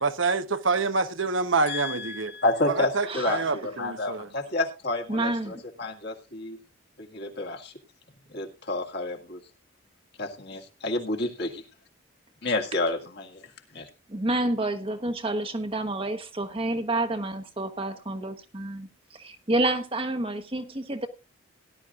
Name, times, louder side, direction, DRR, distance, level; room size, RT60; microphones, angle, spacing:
voice 1, 0.0-2.3 2.9-4.3, right 4 dB, 70° right, 1.0 m, -26 dB
voice 2, 1.7-6.6 7.0-7.7 8.3-9.4 10.2-11.6 12.4-13.9, left 2 dB, 55° left, 2.1 m, -30 dB
voice 3, 5.1-5.6 14.1-21.1, right 2 dB, 25° right, 1.1 m, -29 dB
18.0 x 11.0 x 2.5 m
head